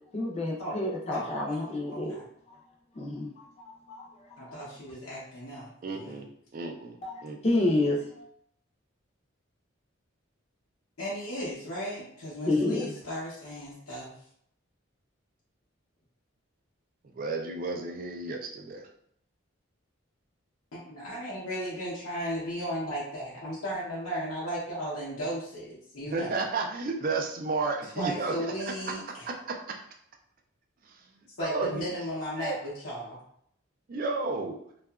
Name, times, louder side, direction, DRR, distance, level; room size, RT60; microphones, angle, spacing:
voice 1, 0.1-2.2 2.5-2.6 2.9-4.6 7.0-8.3 12.4-12.9, left 2 dB, 30° left, -2 dB, 0.5 m, -30 dB
voice 2, 1.1-2.2 4.4-6.2 11.0-14.1 20.7-26.3 28.0-29.3 31.4-33.2, equal, 90° left, -7 dB, 0.7 m, -35 dB
voice 3, 5.8-7.4 17.2-18.9 26.1-28.5 29.3-29.8 31.4-31.9 32.4-32.6 33.9-34.6, right 3 dB, 40° right, 3 dB, 0.3 m, -32 dB
2.7 x 2.3 x 2.3 m, 0.68 s
head